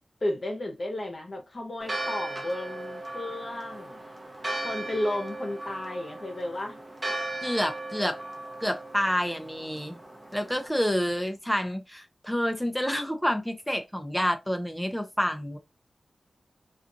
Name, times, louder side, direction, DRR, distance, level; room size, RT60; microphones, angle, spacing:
voice 1, 0.2-4.0 4.6-6.8, left 1 dB, 50° left, 0.9 m, -33 dB
Church bell, 1.8-10.7, right 2 dB, 25° right, 0.9 m, -37 dB
voice 2, 7.4-8.2 8.6-10.0 10.3-15.6, equal, 5° left, 0.6 m, -28 dB
2.5 x 2.5 x 2.6 m
cardioid pair, 55°, 0 cm